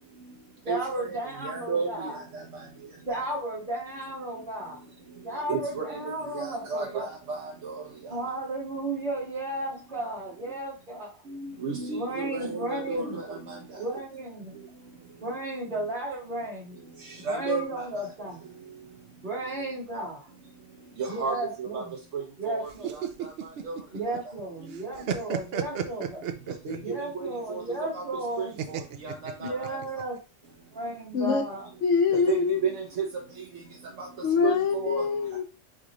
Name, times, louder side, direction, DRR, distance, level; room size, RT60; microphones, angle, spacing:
voice 1, 0.6-2.2 3.1-4.8 5.2-7.1 8.1-11.2 11.9-13.2 13.8-14.5 15.2-16.8 17.3-18.4 19.2-20.3 21.1-21.9 22.4-22.9 23.9-26.2 26.8-28.6 29.4-30.2 30.7-31.7, right 1 dB, 45° right, 1.8 m, -34 dB
voice 2, 1.4-2.1 5.5-6.0 6.3-7.8 11.4-13.4 17.3-17.8 21.2-21.8 22.4-22.7 23.6-23.7 26.7-26.8 27.5-27.6 27.9-28.0 28.7-28.8 29.0-29.7 32.3-32.4 32.6-32.7 33.0-33.1 34.0-34.1 34.4-35.0, right 5 dB, 85° right, 1.1 m, -31 dB
sound 1, 22.7-24.4 24.7-26.9 28.6-30.0, right 8 dB, 65° right, 0.7 m, -33 dB
voice 3, 31.8-32.6 34.2-35.4, left 6 dB, 80° left, 1.0 m, -24 dB
3.7 x 3.3 x 3.1 m
omnidirectional pair, 1.2 m